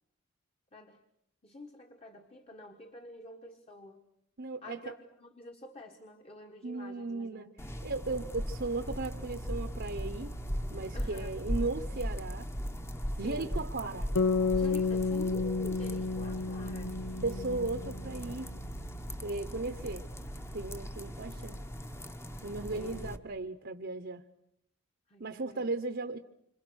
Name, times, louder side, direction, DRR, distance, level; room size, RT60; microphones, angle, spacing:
voice 1, 1.4-4.0 4.6-7.6 10.9-11.5 13.1-13.6 14.5-17.2 17.5-17.7 21.1-21.2 22.7-23.5 25.1-25.6, left 1 dB, 30° left, 4 dB, 1.6 m, -48 dB
voice 2, 4.4-4.9 6.6-7.5 7.8-10.3 10.7-12.5 13.2-14.1 17.2-18.5 19.2-20.0 20.5-21.6 22.4-24.2 25.2-26.2, right 3 dB, 55° right, 7 dB, 1.0 m, -36 dB
sound 1, 7.6-23.2, equal, 15° left, 1.2 m, -38 dB
sound 2, 14.2-18.4, left 4 dB, 85° left, 0.9 m, -31 dB
27.5 x 26.5 x 6.4 m, 0.75 s
head